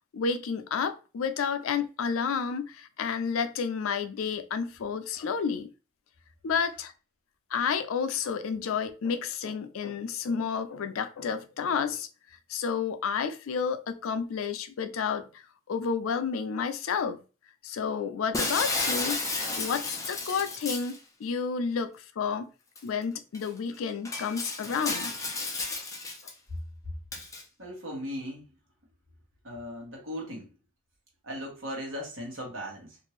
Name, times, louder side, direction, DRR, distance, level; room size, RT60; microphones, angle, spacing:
voice 1, 0.1-5.7 6.4-6.9 7.5-12.1 12.5-15.4 15.7-17.2 17.6-19.2 19.6-22.5 22.8-25.2, left 6 dB, 75° left, 0.4 m, -30 dB
Shatter, 18.3-21.0 22.8-22.9 23.3-23.5 24.0-26.3 27.1-27.4, left 3 dB, 15° left, 0.5 m, -32 dB
voice 2, 27.6-28.5 29.4-30.5 31.2-33.0, equal, 70° right, 1.3 m, -38 dB
2.6 x 2.5 x 3.1 m
head